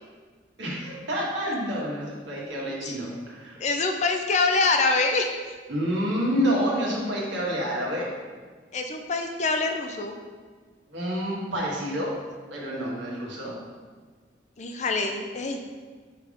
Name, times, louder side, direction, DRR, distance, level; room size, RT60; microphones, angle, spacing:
voice 1, 0.6-3.6 5.7-8.1 10.9-12.1 12.5-13.6, equal, 75° right, -5 dB, 1.6 m, -28 dB
voice 2, 3.6-5.3 8.7-10.2 14.6-15.6, left 3 dB, 35° left, 4 dB, 0.5 m, -25 dB
5.6 x 3.6 x 5.0 m, 1.5 s
head